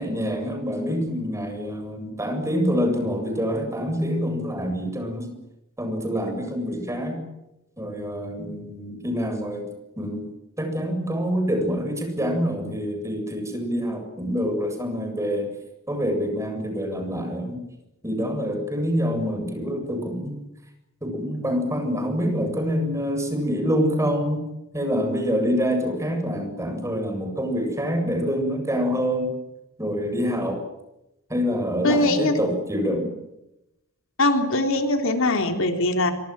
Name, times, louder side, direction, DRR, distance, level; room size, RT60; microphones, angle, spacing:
voice 1, 0.0-5.3 5.8-7.2 7.8-9.7 10.0-10.2 10.6-15.5 15.9-17.6 18.0-20.4 21.0-24.4 24.7-29.3 29.8-30.6 31.3-33.1, equal, 15° right, 5 dB, 7.7 m, -26 dB
voice 2, 31.8-32.3 34.2-36.1, left 2 dB, 65° left, 6 dB, 3.5 m, -21 dB
26.0 x 25.0 x 7.8 m, 0.89 s
head